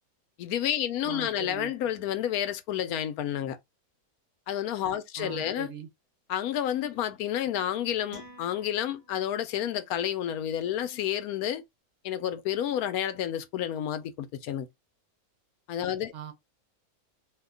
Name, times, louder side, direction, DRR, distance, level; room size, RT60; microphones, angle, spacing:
voice 1, 0.4-3.6 4.5-5.7 6.3-11.6 12.0-14.7 15.7-16.1, left 10 dB, 80° left, 1.1 m, -30 dB
voice 2, 1.0-1.7 5.2-5.9 16.1-16.3, right 9 dB, 60° right, 1.0 m, -40 dB
sound 1, 8.1-9.6, right 1 dB, 25° right, 0.5 m, -51 dB
2.8 x 2.2 x 3.7 m
omnidirectional pair, 1.5 m